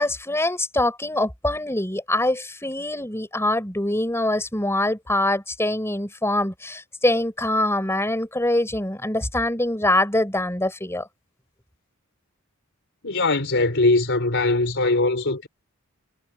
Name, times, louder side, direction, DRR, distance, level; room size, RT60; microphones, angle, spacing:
voice 1, 0.0-11.1, left 1 dB, 10° left, 6.1 m, -24 dB
voice 2, 13.0-15.5, left 2 dB, 55° left, 4.3 m, -21 dB
head